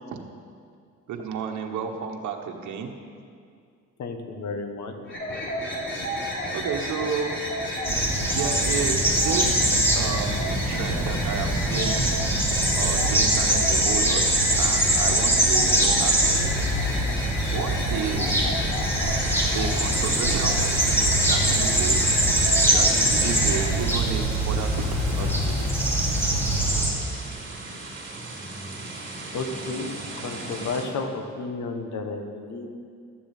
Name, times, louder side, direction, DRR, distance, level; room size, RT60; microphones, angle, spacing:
voice 1, 1.1-3.0 6.5-7.4 8.3-12.1 12.8-16.6 17.5-18.7 19.5-22.1 22.7-25.9, right 6 dB, 75° right, 3 dB, 1.3 m, -32 dB
voice 2, 4.0-4.9 29.3-29.9 30.2-32.7, left 3 dB, 70° left, 5 dB, 1.5 m, -32 dB
sound 1, 5.0-23.8, equal, 40° left, 3.5 m, -31 dB
sound 2, 7.8-26.9, right 1 dB, 10° left, 2.8 m, -23 dB
sound 3, 19.0-30.9, right 2 dB, 40° right, 3.5 m, -38 dB
12.5 x 7.3 x 7.6 m, 2.3 s
cardioid pair, 90°, 30 cm